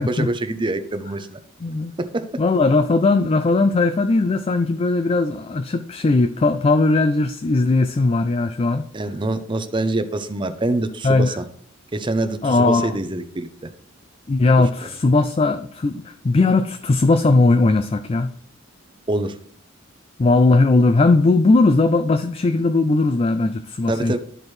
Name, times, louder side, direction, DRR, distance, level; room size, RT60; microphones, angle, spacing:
voice 1, 0.0-1.4 2.0-2.3 8.9-11.4 11.9-13.5 14.6-14.7 19.1-19.3 23.9-24.2, right 2 dB, 25° right, 10 dB, 0.6 m, -25 dB
voice 2, 1.6-1.9 2.4-8.8 11.0-11.4 12.4-12.9 14.3-18.3 20.2-24.1, left 3 dB, 30° left, 9 dB, 0.4 m, -18 dB
12.5 x 4.5 x 3.3 m, 0.62 s
head